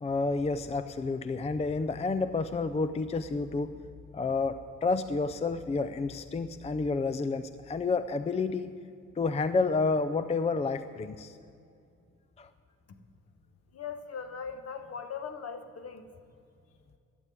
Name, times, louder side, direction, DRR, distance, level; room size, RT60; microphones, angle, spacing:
voice 1, 0.0-3.8 4.1-8.7 9.2-11.4 12.4-12.5, left 4 dB, 20° left, 12 dB, 0.5 m, -30 dB
voice 2, 13.7-16.1, left 6 dB, 55° left, 8 dB, 1.3 m, -39 dB
12.5 x 7.9 x 9.3 m, 2.5 s
cardioid pair, 90°, 30 cm